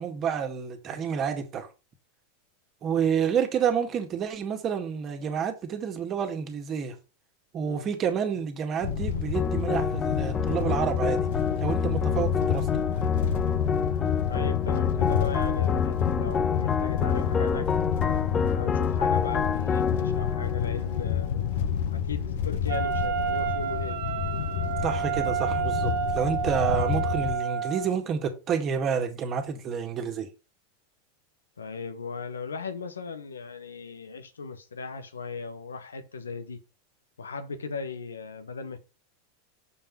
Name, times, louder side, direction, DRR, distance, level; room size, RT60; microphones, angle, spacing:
voice 1, 0.0-1.7 2.8-7.0 7.5-11.2 11.6-12.7 24.8-30.3, right 7 dB, 30° right, 2.0 m, -29 dB
sound 1, 8.8-27.3, left 9 dB, 55° left, 0.9 m, -29 dB
sound 2, 9.3-21.8, left 5 dB, 25° left, 0.4 m, -29 dB
voice 2, 14.3-17.7 18.5-21.5 21.9-24.0 31.6-36.6 37.2-38.8, left 4 dB, 75° left, 1.2 m, -37 dB
Wind instrument woodwind instrument, 22.7-27.9, right 10 dB, 55° right, 1.5 m, -30 dB
7.1 x 5.5 x 5.4 m
figure-of-eight pair, 85°, 0 cm